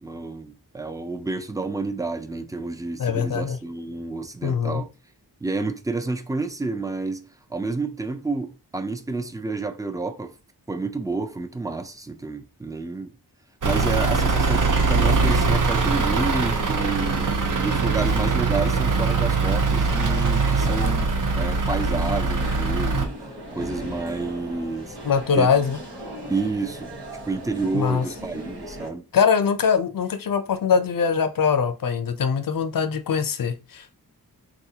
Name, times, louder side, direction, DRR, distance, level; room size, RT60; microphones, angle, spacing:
voice 1, 0.0-4.9 5.4-10.3 10.7-13.1 13.6-17.3 17.6-21.1 21.3-25.0 25.3-25.5 26.3-26.9 27.3-29.1, right 3 dB, 10° right, 0.4 m, -29 dB
voice 2, 3.0-3.6 4.4-4.8 25.0-25.8 27.7-28.0 29.1-34.0, left 6 dB, 60° left, 0.6 m, -22 dB
Truck / Idling, 13.6-23.1, right 4 dB, 50° right, 0.6 m, -22 dB
sound 1, 15.3-28.9, equal, 85° right, 1.1 m, -38 dB
3.9 x 2.4 x 2.8 m
wide cardioid pair, 75°, 39 cm